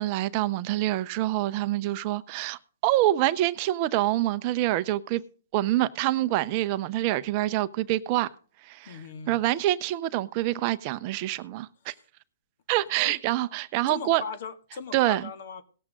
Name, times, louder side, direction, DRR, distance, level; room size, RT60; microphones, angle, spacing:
voice 1, 0.0-5.2 5.5-8.3 8.6-9.0 9.3-11.9 12.7-14.2 14.9-15.2, right 15 dB, 40° right, 0.7 m, -26 dB
voice 2, 8.9-9.4 11.9-12.0 13.0-13.2 13.9-15.6, left 6 dB, 60° left, 1.8 m, -39 dB
18.0 x 7.4 x 3.7 m
hypercardioid pair, 135°, 0 cm